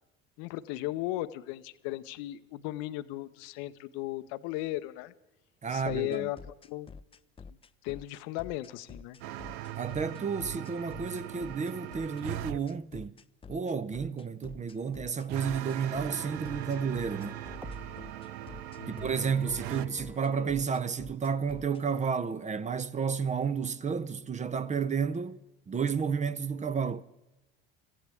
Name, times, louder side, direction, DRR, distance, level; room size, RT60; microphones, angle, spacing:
voice 1, 0.4-5.1 5.7-6.4 6.7-6.9 7.8-9.2 18.8-19.1, left 16 dB, 70° left, 0.8 m, -36 dB
voice 2, 5.6-6.3 9.8-13.2 13.5-17.4 18.9-25.4 25.7-27.0, right 6 dB, 25° right, 0.7 m, -31 dB
sound 1, 5.9-21.8, left 5 dB, 20° left, 0.5 m, -48 dB
sound 2, 9.2-12.6 15.3-19.9, right 14 dB, 80° right, 0.6 m, -40 dB
sound 3, 16.2-20.7 21.0-21.1, right 1 dB, 5° right, 1.1 m, -50 dB
25.5 x 15.0 x 3.5 m
hypercardioid pair, 80°, 30 cm